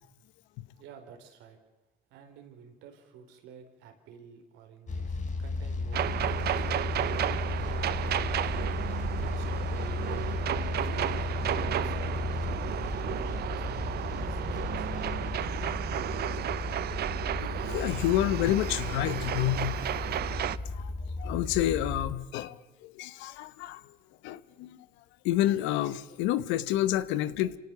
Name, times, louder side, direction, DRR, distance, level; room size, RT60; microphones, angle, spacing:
voice 1, 0.8-1.6 2.1-8.5 9.1-10.2 10.8-11.2 11.8-13.6 14.0-15.5, right 6 dB, 80° right, 4.1 m, -50 dB
sound 1, 4.9-22.1, left 3 dB, 40° left, 3.8 m, -34 dB
sound 2, 5.9-20.6, right 12 dB, 60° right, 0.8 m, -33 dB
voice 2, 17.4-19.9 20.7-20.9 21.2-22.6 23.0-23.8 24.2-24.8 25.2-27.6, left 13 dB, 85° left, 1.1 m, -29 dB
27.0 x 17.5 x 7.0 m
supercardioid pair, 75°, 19 cm